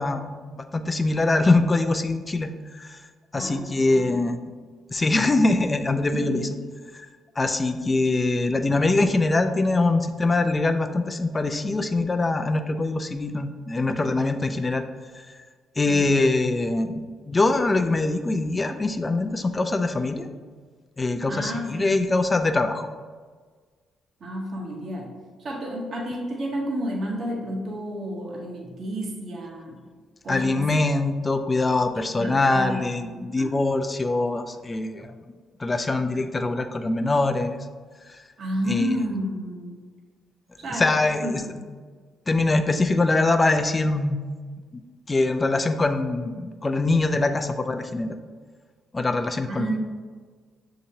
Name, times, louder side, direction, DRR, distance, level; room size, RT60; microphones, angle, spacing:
voice 1, 0.0-3.0 3.3-4.4 4.9-6.6 6.9-7.1 7.4-14.8 15.1-15.2 15.8-20.3 21.0-22.9 30.3-35.1 35.6-37.6 38.1-38.2 38.6-39.0 40.6-41.6 42.3-44.2 45.1-48.2 48.9-49.8, left 2 dB, 25° left, 8 dB, 0.4 m, -23 dB
voice 2, 3.9-4.3 6.1-6.6 15.8-16.1 21.3-22.1 24.2-25.1 25.4-29.8 30.2-30.8 32.2-33.6 35.0-35.1 38.4-39.8 40.6-41.5 49.5-49.8, equal, 55° right, -2 dB, 1.0 m, -31 dB
6.3 x 2.9 x 2.8 m, 1.5 s
cardioid pair, 75°, 0 cm